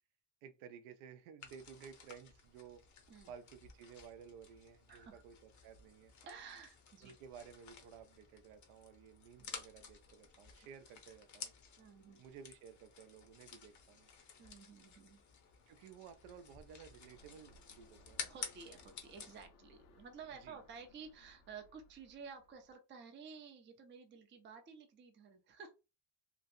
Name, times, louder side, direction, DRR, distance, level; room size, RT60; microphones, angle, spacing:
voice 1, 0.4-2.8 3.3-6.1 7.0-11.5 12.2-14.1 15.7-18.3 20.4-20.6, right 7 dB, 80° right, 0.7 m, -55 dB
sound 1, 1.4-19.5, left 6 dB, 35° left, 0.7 m, -53 dB
voice 2, 4.9-5.2 6.2-7.1 9.4-9.5 11.8-12.2 14.4-15.2 18.3-25.7, right 5 dB, 25° right, 0.5 m, -53 dB
sound 2, 17.0-22.7, left 2 dB, 85° left, 1.2 m, -65 dB
3.0 x 2.5 x 2.6 m
cardioid pair, 140°, 48 cm